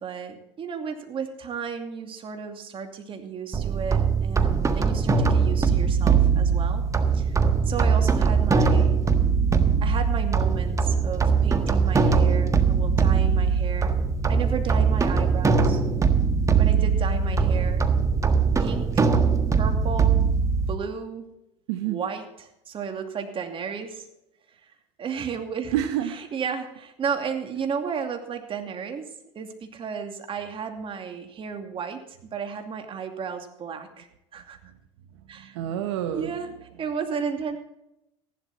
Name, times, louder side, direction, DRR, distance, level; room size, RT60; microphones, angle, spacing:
voice 1, 0.0-6.8 7.1-9.0 9.8-14.0 14.3-15.8 16.6-17.8 18.6-19.1 19.5-20.3 20.7-21.3 21.8-24.1 25.0-25.8 26.1-34.6 35.3-35.6 36.1-36.5 36.8-37.6, right 6 dB, 35° right, 5 dB, 2.6 m, -33 dB
sound 1, 3.5-20.7, right 5 dB, 20° right, 1.4 m, -21 dB
voice 2, 21.7-22.0 25.7-26.2 35.5-36.3, right 11 dB, 80° right, 8 dB, 1.1 m, -27 dB
15.0 x 11.5 x 4.2 m, 0.85 s
supercardioid pair, 95°, 15 cm